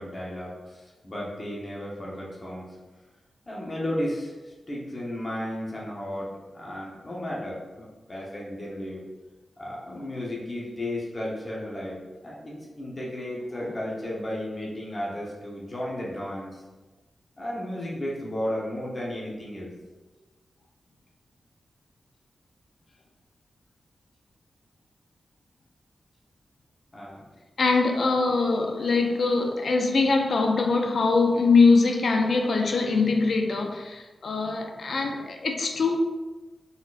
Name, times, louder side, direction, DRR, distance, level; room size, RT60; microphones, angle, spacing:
voice 1, 0.0-2.8 3.5-9.0 9.6-16.6 17.4-19.7 26.9-27.2, left 1 dB, 30° left, -4 dB, 1.0 m, -34 dB
voice 2, 27.6-36.0, left 4 dB, 60° left, 3 dB, 0.5 m, -22 dB
4.0 x 3.9 x 2.5 m, 1.2 s
wide cardioid pair, 125°, 0 cm